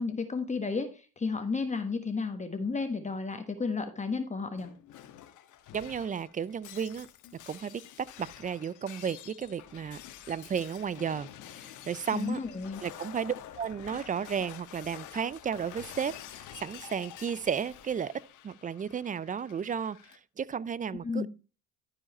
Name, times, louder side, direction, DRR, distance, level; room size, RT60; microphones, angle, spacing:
voice 1, 0.0-4.7 12.1-12.8 21.0-21.3, left 4 dB, 20° left, 1.3 m, -32 dB
Shatter, 4.6-20.2, left 11 dB, 65° left, 1.2 m, -48 dB
voice 2, 5.7-7.1 7.5-10.0 10.3-11.3 11.5-12.4 12.8-18.1 18.4-21.3, right 7 dB, 25° right, 0.4 m, -33 dB
13.0 x 4.9 x 4.2 m
supercardioid pair, 80°, 32 cm